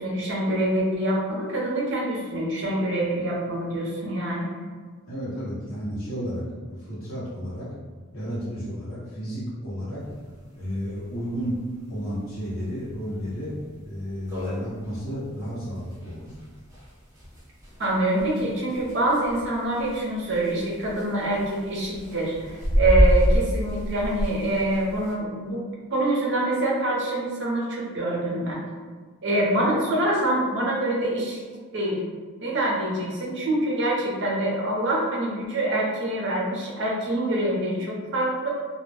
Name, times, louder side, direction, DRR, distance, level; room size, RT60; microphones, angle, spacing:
voice 1, 0.0-4.5 17.8-25.6 25.9-28.6 29.2-31.4 31.7-32.0 32.4-38.5, right 1 dB, 55° right, -4 dB, 0.7 m, -25 dB
voice 2, 5.1-6.4 6.8-7.7 8.1-10.0 10.5-11.6 11.9-13.5 13.8-16.3, equal, 65° left, -10 dB, 0.8 m, -32 dB
sound 1, 10.1-10.2 10.4-10.5 10.9-11.0 11.6-11.8 12.3-12.4 12.9-13.0 13.3-13.4 13.8-13.9 14.1-25.1, equal, 15° right, 0.6 m, -27 dB
2.3 x 2.1 x 3.2 m, 1.5 s
head